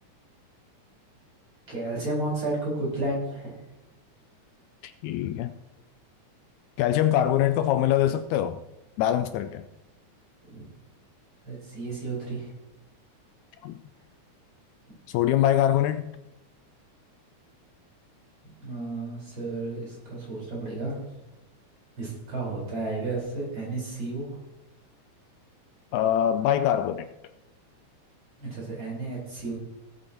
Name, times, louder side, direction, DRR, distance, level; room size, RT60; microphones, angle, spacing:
voice 1, 1.7-3.5 10.4-10.6 11.5-12.5 18.4-21.0 22.0-24.4 28.4-29.7, right 2 dB, 40° right, -4 dB, 5.5 m, -32 dB
voice 2, 4.8-5.5 6.8-8.6 9.0-9.7 13.6-13.8 15.1-16.1 25.9-27.1, left 11 dB, 80° left, 10 dB, 1.8 m, -23 dB
18.5 x 8.8 x 3.0 m, 0.92 s
omnidirectional pair, 3.5 m